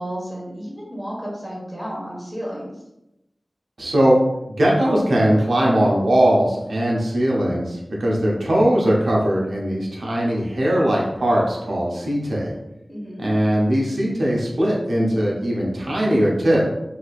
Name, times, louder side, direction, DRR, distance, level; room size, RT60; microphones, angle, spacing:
voice 1, 0.0-2.7 12.9-13.3, equal, 5° left, -5 dB, 1.4 m, -32 dB
voice 2, 3.8-4.2 4.6-12.5 13.2-16.7, equal, 85° right, -4 dB, 0.7 m, -20 dB
3.1 x 2.8 x 2.4 m, 0.89 s
wide cardioid pair, 60°, 0 cm